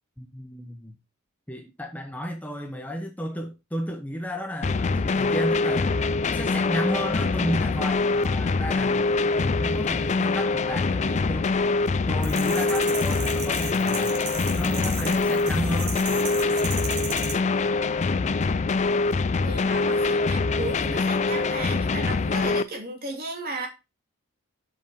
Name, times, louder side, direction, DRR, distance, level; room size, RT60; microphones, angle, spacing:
voice 1, 0.2-1.0 1.5-6.0 6.3-9.1 9.4-11.5 12.1-14.2 14.5-16.0, equal, 5° left, 0.8 m, -32 dB
sound 1, 4.6-22.6, left 3 dB, 30° left, 0.4 m, -24 dB
sound 2, 12.2-17.3, right 5 dB, 85° right, 2.9 m, -35 dB
voice 2, 19.4-23.7, right 2 dB, 45° right, 2.8 m, -35 dB
8.3 x 5.7 x 4.3 m
head